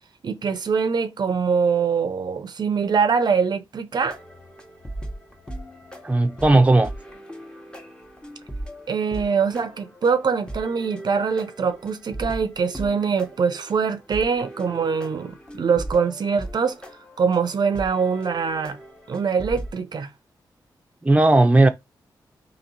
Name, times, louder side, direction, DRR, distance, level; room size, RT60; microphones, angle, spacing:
voice 1, 0.2-4.2 8.9-16.8 17.2-18.8 19.1-20.1, right 5 dB, 60° right, 0.5 m, -23 dB
sound 1, 4.0-19.8, right 1 dB, 10° left, 1.2 m, -38 dB
voice 2, 6.0-6.9 21.0-21.7, right 2 dB, 15° right, 0.6 m, -16 dB
2.9 x 2.9 x 4.0 m
cardioid pair, 60°, 8 cm